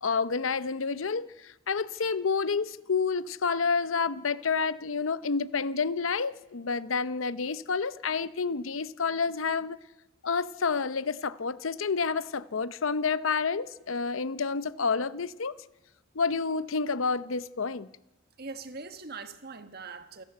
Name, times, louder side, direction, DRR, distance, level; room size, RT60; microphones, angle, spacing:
voice 1, 0.0-9.8 10.2-15.6 16.1-17.9, left 5 dB, 85° left, 0.8 m, -29 dB
voice 2, 18.4-20.2, right 4 dB, 50° right, 1.5 m, -41 dB
28.0 x 13.5 x 8.1 m
head